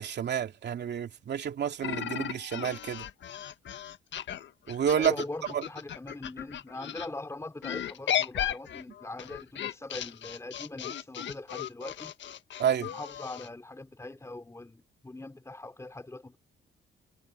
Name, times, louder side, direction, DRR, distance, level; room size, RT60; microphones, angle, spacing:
voice 1, 0.0-3.1 4.7-5.1 5.5-5.6 12.6-12.9, right 8 dB, 60° right, 2.8 m, -29 dB
sound 1, 1.8-7.1 7.6-13.5, left 10 dB, 65° left, 1.6 m, -36 dB
voice 2, 4.9-12.1 12.8-16.4, left 2 dB, 15° left, 3.1 m, -41 dB
cardioid pair, 90°, 20 cm